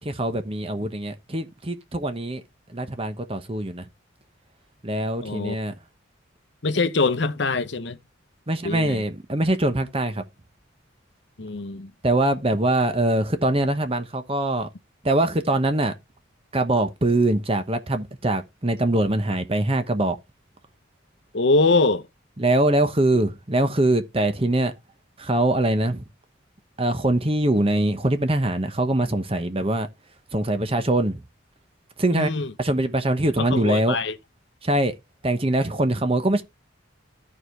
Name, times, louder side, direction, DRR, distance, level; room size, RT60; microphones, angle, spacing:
voice 1, 0.0-2.4 2.7-3.9 4.8-5.7 8.5-10.2 12.0-14.7 15.0-15.9 16.5-20.2 22.4-24.7 25.2-26.0 26.8-29.9 30.3-31.2 32.0-32.3 32.6-34.0 34.6-34.9 35.2-36.4, right 1 dB, 30° right, 1.1 m, -23 dB
voice 2, 5.2-5.6 6.6-8.0 8.6-9.0 11.4-11.9 21.3-22.1 32.1-32.5 33.4-34.1, left 3 dB, 60° left, 0.8 m, -23 dB
13.5 x 4.8 x 3.3 m
head